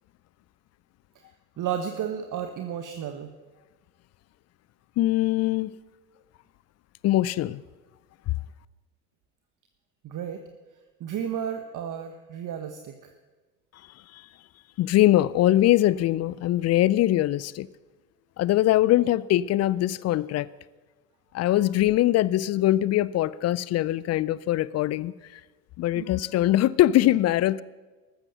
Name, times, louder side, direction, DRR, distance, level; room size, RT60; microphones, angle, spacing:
voice 1, 1.6-3.3 10.0-10.4 11.0-13.1 25.9-26.1, right 8 dB, 40° right, 1.3 m, -32 dB
voice 2, 5.0-5.7 7.0-7.6 14.1-14.3 14.8-17.7 18.4-20.5 21.3-25.4 25.8-27.6, left 14 dB, 35° left, 0.5 m, -22 dB
14.5 x 13.0 x 6.6 m
hypercardioid pair, 70°, 48 cm